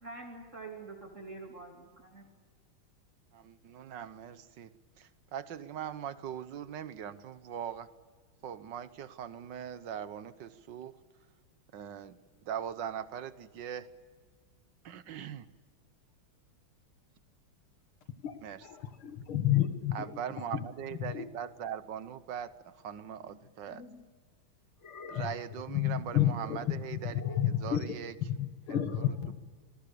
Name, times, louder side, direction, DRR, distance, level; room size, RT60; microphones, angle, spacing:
voice 1, 0.0-2.3, right 3 dB, 35° right, 0 dB, 3.3 m, -46 dB
voice 2, 3.3-4.7 5.0-7.9 8.4-10.9 11.7-12.2 12.5-13.9 14.8-15.5 18.4-18.6 19.9-22.5 22.8-23.8 25.1-27.2 27.6-28.2 28.7-29.3, right 9 dB, 60° right, 13 dB, 1.6 m, -41 dB
voice 3, 19.3-20.1 21.0-21.3 25.1-25.3 25.7-27.9 28.3-29.3, left 11 dB, 75° left, 7 dB, 2.5 m, -30 dB
sound 1, 23.3-24.1 24.8-25.7 27.1-27.7, left 4 dB, 40° left, 1.3 m, -47 dB
27.5 x 20.0 x 6.9 m, 1.5 s
omnidirectional pair, 2.3 m